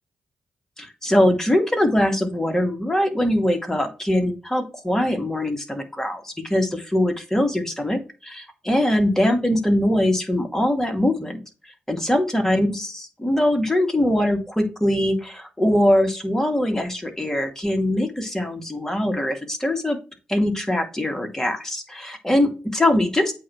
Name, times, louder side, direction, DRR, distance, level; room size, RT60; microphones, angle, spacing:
voice 1, 0.8-20.0 20.3-23.3, left 1 dB, 10° left, 4 dB, 2.4 m, -22 dB
8.3 x 3.0 x 5.9 m, 0.33 s
supercardioid pair, 40°, 4 cm